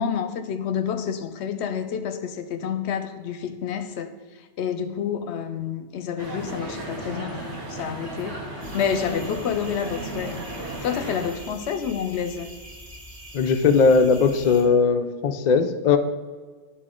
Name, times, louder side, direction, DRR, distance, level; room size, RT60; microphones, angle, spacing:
voice 1, 0.0-4.1 4.6-8.4 8.7-10.4 10.8-12.5, left 7 dB, 75° left, 0.8 m, -29 dB
sound 1, 6.2-11.3, right 1 dB, 70° right, 1.8 m, -34 dB
sound 2, 8.6-14.6, equal, 15° right, 1.4 m, -43 dB
voice 2, 13.3-16.0, left 5 dB, 55° left, 0.5 m, -19 dB
10.5 x 4.4 x 3.7 m
omnidirectional pair, 1.2 m